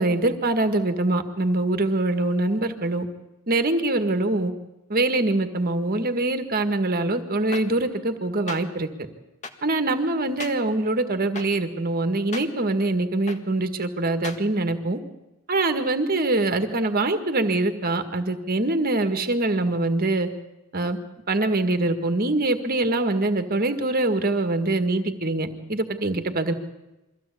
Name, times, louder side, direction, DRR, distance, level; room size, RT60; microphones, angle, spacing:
voice 1, 0.0-3.1 3.5-4.5 4.9-8.9 9.6-15.0 15.5-20.3 20.7-21.0 21.3-26.5, right 2 dB, 40° right, 8 dB, 1.8 m, -24 dB
sound 1, 7.5-7.6 8.5-8.6 9.4-9.5 10.4-10.5 11.3-11.5 12.3-12.4 13.3-13.4 14.2-14.4, left 4 dB, 30° left, 1.7 m, -34 dB
23.5 x 15.5 x 8.4 m, 1.0 s
head